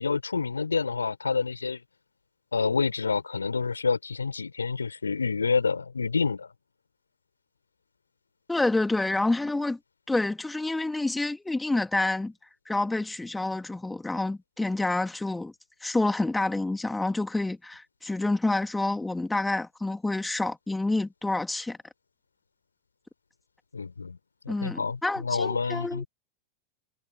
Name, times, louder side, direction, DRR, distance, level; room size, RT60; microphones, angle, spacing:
voice 1, 0.0-1.8 2.5-6.5 23.7-24.2 24.4-26.1, left 4 dB, 75° left, 4.7 m, -28 dB
voice 2, 8.5-9.8 10.1-12.3 12.7-15.5 15.8-21.8 24.5-26.0, left 2 dB, 5° left, 2.4 m, -28 dB
figure-of-eight pair, 90°, 0 cm